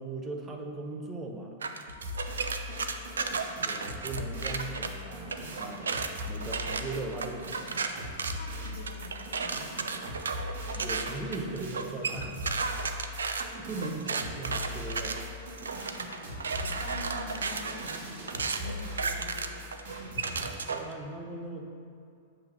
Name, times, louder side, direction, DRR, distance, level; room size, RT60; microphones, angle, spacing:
voice 1, 0.0-1.5 3.5-5.9 6.3-7.8 10.7-12.4 13.6-15.2 20.7-21.7, right 2 dB, 20° right, 2 dB, 0.7 m, -38 dB
sound 1, 1.6-4.9 5.3-20.9, right 5 dB, 90° right, 0.4 m, -34 dB
sound 2, 1.9-20.5, left 1 dB, 65° right, 1.6 m, -40 dB
voice 2, 8.2-9.9 15.7-19.9, left 2 dB, 75° left, 0 dB, 1.0 m, -46 dB
7.6 x 3.0 x 5.4 m, 2.4 s
hypercardioid pair, 115°, 0 cm